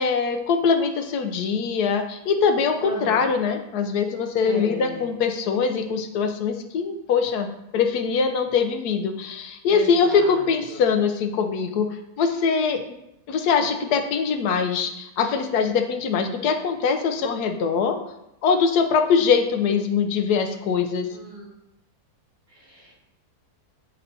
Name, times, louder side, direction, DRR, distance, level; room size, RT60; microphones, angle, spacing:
voice 1, 0.0-7.5 7.7-11.9 12.2-12.8 13.3-18.0 18.4-21.1, left 5 dB, 85° left, 6 dB, 1.2 m, -22 dB
voice 2, 2.8-3.2 4.4-5.0 9.7-10.8 21.1-21.5 22.5-22.9, equal, 70° right, -8 dB, 2.9 m, -35 dB
9.5 x 4.3 x 2.7 m, 0.86 s
omnidirectional pair, 1.7 m